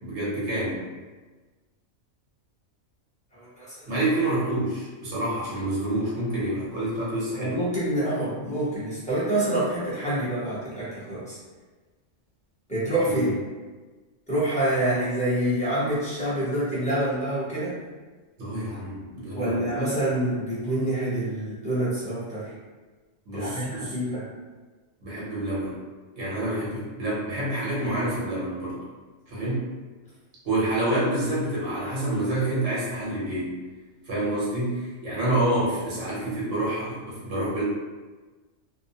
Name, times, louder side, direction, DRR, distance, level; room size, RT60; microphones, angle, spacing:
voice 1, 0.0-0.8 3.9-7.6 13.1-13.3 18.4-19.7 23.3-23.9 25.0-25.8 26.2-28.8 29.3-29.6 30.4-33.6 34.0-37.6, right 1 dB, 80° right, -7 dB, 1.3 m, -28 dB
voice 2, 3.3-3.9 7.3-11.4 12.7-13.3 14.3-17.8 19.3-22.5 23.3-24.3 30.8-30.9, right 1 dB, 5° left, -11 dB, 0.9 m, -27 dB
2.7 x 2.0 x 2.7 m, 1.3 s
omnidirectional pair, 1.3 m